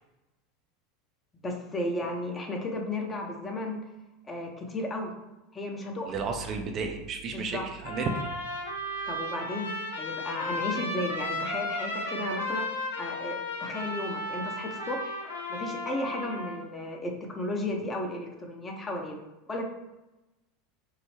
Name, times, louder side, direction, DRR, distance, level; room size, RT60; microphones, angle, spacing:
voice 1, 1.4-3.8 4.2-5.1 5.5-6.1 7.3-7.6 9.1-15.2 15.5-19.2 19.5-19.6, left 2 dB, 25° left, 2 dB, 0.7 m, -34 dB
voice 2, 6.1-8.3, right 4 dB, 40° right, 4 dB, 0.5 m, -32 dB
Trumpet, 7.8-16.6, left 1 dB, 85° left, 0.8 m, -34 dB
4.6 x 2.0 x 3.2 m, 1.0 s
hypercardioid pair, 80°, 0 cm